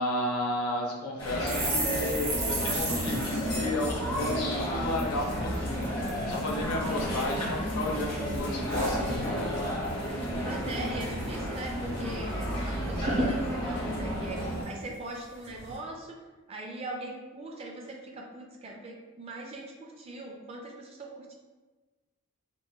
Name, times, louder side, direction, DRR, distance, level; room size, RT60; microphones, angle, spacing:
voice 1, 0.0-9.4, left 1 dB, 80° left, 1 dB, 0.5 m, -33 dB
sound 1, 1.2-14.6, equal, 20° left, 0.7 m, -32 dB
sound 2, 1.4-5.0 5.3-5.5 5.8-6.4 6.9-7.7 8.0-9.7 10.0-10.2 10.5-11.1 11.4-11.5 11.8-12.5 12.7-12.8 13.0-14.9 15.4-15.7, right 1 dB, 70° right, 1.2 m, -35 dB
voice 2, 10.4-16.2 16.5-21.3, right 2 dB, 25° right, 0 dB, 0.3 m, -41 dB
4.1 x 2.1 x 2.2 m, 1.3 s
head